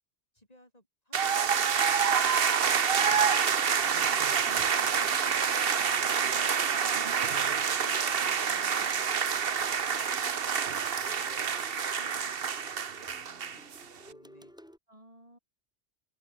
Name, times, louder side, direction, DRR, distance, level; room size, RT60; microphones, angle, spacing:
voice 1, 0.3-4.4 9.2-9.8 11.1-12.3 12.9-13.7 14.1-14.5, left 1 dB, 35° left, 8.0 m, -59 dB
sound 1, 1.1-13.8, right 7 dB, 60° right, 1.2 m, -27 dB
sound 2, 2.0-14.8, equal, 5° right, 6.7 m, -54 dB
voice 2, 4.4-5.4 5.8-9.1 9.9-10.7 14.9-15.4, right 1 dB, 30° right, 7.1 m, -53 dB
omnidirectional pair, 1.1 m